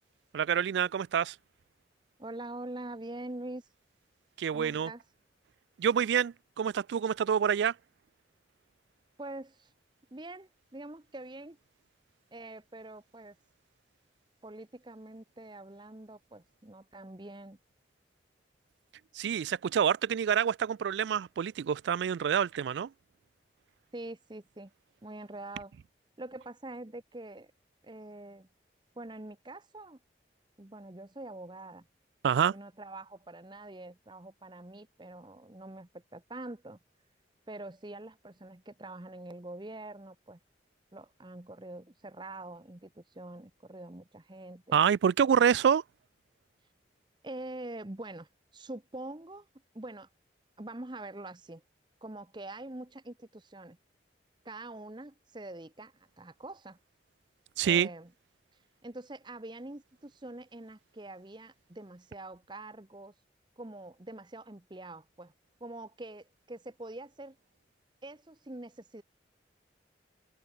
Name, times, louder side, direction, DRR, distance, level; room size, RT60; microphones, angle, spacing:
voice 1, 0.3-1.4 4.4-4.9 5.8-7.7 19.1-22.9 32.2-32.5 44.7-45.8 57.6-57.9, right 8 dB, 75° right, 0.3 m, -27 dB
voice 2, 2.2-3.7 4.5-5.0 9.2-9.7 10.1-11.6 12.3-13.4 14.4-17.6 23.9-24.7 25.0-25.8 26.2-27.5 27.8-28.5 29.0-30.0 30.6-31.8 32.5-36.8 37.5-40.4 40.9-44.8 47.2-49.5 49.7-50.1 50.6-51.6 52.0-53.8 54.4-56.8 57.6-58.1 58.8-63.1 63.6-65.3 65.6-67.4 68.0-69.0, right 2 dB, 25° right, 1.0 m, -44 dB
head